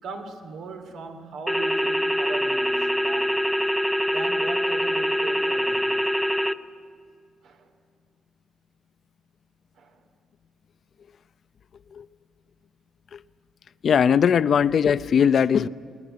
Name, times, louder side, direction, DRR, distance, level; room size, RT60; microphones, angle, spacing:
voice 1, 0.0-3.5 4.1-6.0 7.4-7.7 9.8-10.0 14.1-14.6, right 4 dB, 75° right, 4 dB, 2.7 m, -39 dB
sound 1, 1.5-6.5, equal, 5° right, 0.8 m, -24 dB
voice 2, 13.8-15.7, left 7 dB, 55° left, 15 dB, 0.6 m, -19 dB
21.0 x 19.5 x 10.0 m, 2.3 s
cardioid pair, 90°, 0 cm